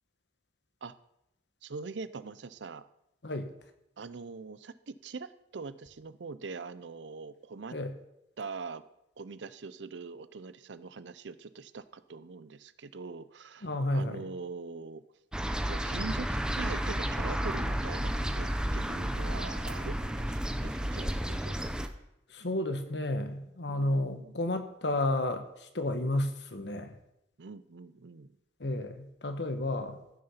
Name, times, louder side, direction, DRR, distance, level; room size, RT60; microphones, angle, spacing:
voice 1, 1.6-2.8 4.0-7.8 8.4-8.8 9.2-15.0 15.7-21.7 23.7-24.4 27.4-28.3, right 4 dB, 85° right, 14 dB, 0.6 m, -43 dB
voice 2, 13.6-14.2 22.3-27.0 28.6-30.0, left 1 dB, 70° left, 7 dB, 1.3 m, -32 dB
sound 1, 15.3-21.9, equal, 5° right, 0.7 m, -32 dB
14.5 x 6.7 x 5.7 m, 0.83 s
head